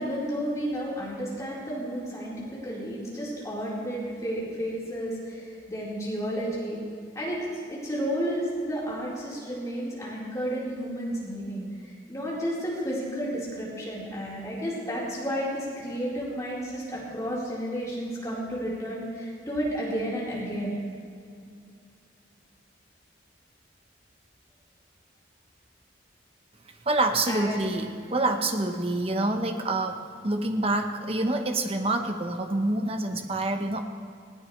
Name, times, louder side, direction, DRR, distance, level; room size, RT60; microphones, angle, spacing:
voice 1, 0.0-2.3 2.6-5.4 5.7-6.8 7.1-11.6 12.1-20.7 27.3-27.7, equal, 20° left, -7 dB, 4.3 m, -32 dB
voice 2, 26.9-33.8, right 2 dB, 30° right, 5 dB, 1.0 m, -27 dB
20.0 x 17.0 x 3.3 m, 2.3 s
head